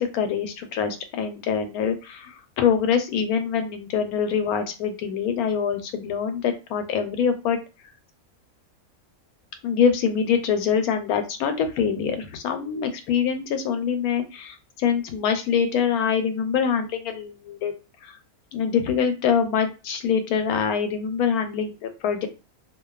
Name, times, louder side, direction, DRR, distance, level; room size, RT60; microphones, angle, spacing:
voice 1, 0.0-7.6 9.6-17.7 18.0-18.1 18.5-22.3, left 7 dB, 90° left, 7 dB, 1.1 m, -24 dB
2.5 x 2.2 x 2.3 m, 0.30 s
omnidirectional pair, 1.5 m